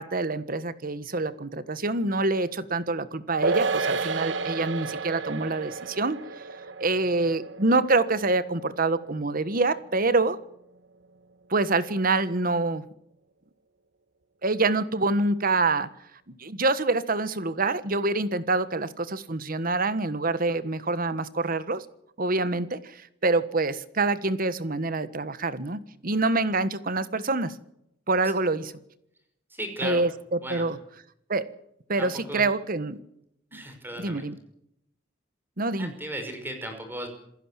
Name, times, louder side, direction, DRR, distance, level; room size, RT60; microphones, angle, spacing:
voice 1, 0.0-6.2 6.8-10.4 11.5-12.8 14.4-15.9 16.3-21.8 22.2-27.5 28.1-28.7 29.8-30.8 31.3-31.5 31.9-33.0 33.5-33.6 34.0-34.4 35.6-35.9, right 3 dB, 50° right, 14 dB, 1.4 m, -26 dB
sound 1, 3.4-10.1 10.4-10.5, right 4 dB, 75° right, 1.2 m, -32 dB
voice 2, 29.5-30.0 30.4-30.6 32.0-32.4 33.5-34.2 35.8-37.1, right 1 dB, 10° right, 5 dB, 5.4 m, -36 dB
27.5 x 16.0 x 7.5 m, 0.78 s
head